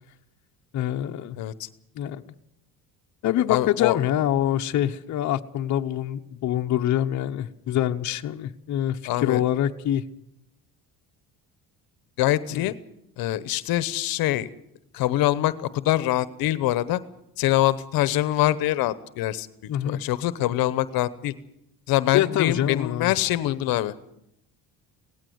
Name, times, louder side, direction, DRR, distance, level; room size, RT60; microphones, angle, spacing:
voice 1, 0.7-1.4 1.9-2.2 3.2-10.0 12.5-12.7 19.7-20.0 22.1-23.1, left 11 dB, 55° left, 5 dB, 1.1 m, -25 dB
voice 2, 1.4-1.7 3.5-4.0 9.0-9.4 12.2-12.7 13.2-14.5 14.9-17.0 17.4-19.5 19.8-21.3 21.9-23.9, left 14 dB, 75° left, 15 dB, 1.1 m, -24 dB
18.5 x 15.5 x 9.6 m, 0.78 s
cardioid pair, 150°, 35 cm